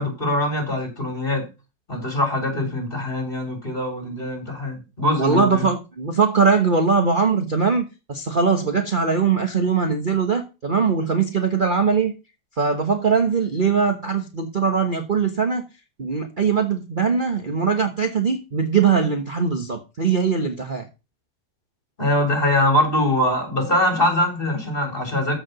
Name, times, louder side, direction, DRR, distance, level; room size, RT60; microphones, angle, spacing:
voice 1, 0.0-1.4 1.9-5.7 22.0-25.4, left 1 dB, 30° left, 3.8 m, -22 dB
voice 2, 5.2-12.1 12.6-15.6 16.0-20.9, right 5 dB, 30° right, 1.2 m, -21 dB
14.0 x 4.8 x 6.7 m
omnidirectional pair, 1.9 m